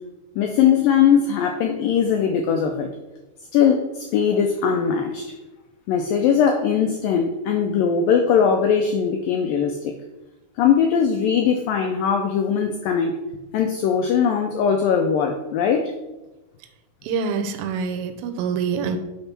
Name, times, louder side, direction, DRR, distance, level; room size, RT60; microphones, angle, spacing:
voice 1, 0.4-2.9 3.5-5.3 5.9-9.9 10.6-13.1 13.5-15.9, left 7 dB, 85° left, 4 dB, 2.0 m, -20 dB
voice 2, 17.0-19.0, right 6 dB, 75° right, 5 dB, 2.3 m, -25 dB
8.7 x 3.5 x 5.9 m, 1.1 s
omnidirectional pair, 4.6 m